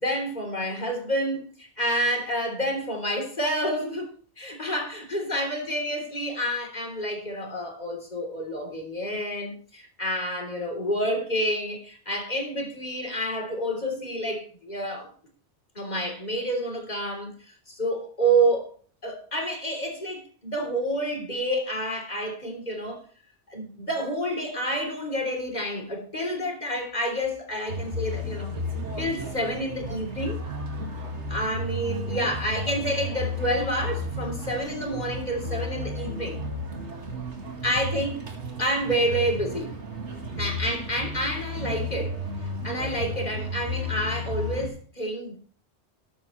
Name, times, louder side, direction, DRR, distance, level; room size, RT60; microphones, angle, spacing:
voice 1, 0.0-4.1 4.4-15.1 15.8-17.3 17.7-18.7 19.0-23.0 23.5-28.6 29.0-30.4 31.3-36.4 37.6-38.3 38.6-39.7 40.4-45.4, right 1 dB, 40° left, 3.5 m, -29 dB
sound 1, 27.7-44.7, left 1 dB, 80° right, 2.4 m, -33 dB
13.5 x 11.0 x 3.2 m
omnidirectional pair, 1.2 m